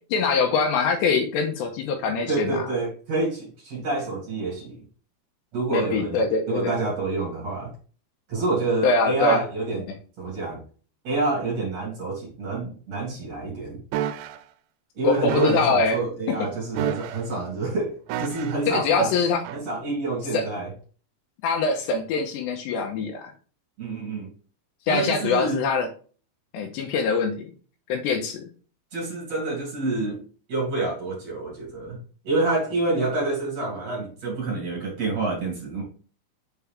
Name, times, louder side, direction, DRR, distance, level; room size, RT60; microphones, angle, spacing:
voice 1, 0.1-2.7 5.7-6.7 8.8-9.4 15.0-16.0 18.7-19.4 20.3-20.4 21.4-23.3 24.9-25.9 26.5-27.5 27.9-28.4, left 4 dB, 80° left, 4 dB, 2.9 m, -23 dB
voice 2, 2.3-4.8 5.5-7.7 8.3-9.9 10.2-10.6 11.0-13.8 14.9-19.1 19.5-20.7 23.8-24.3 24.9-25.6 28.9-30.2 30.5-32.0 32.2-35.8, right 2 dB, 45° right, -3 dB, 2.8 m, -27 dB
sound 1, 13.9-14.4 15.3-15.8 16.8-17.4 18.1-18.7 19.5-19.6, right 10 dB, 85° right, 2.9 m, -30 dB
7.1 x 4.7 x 3.4 m, 0.40 s
omnidirectional pair, 5.4 m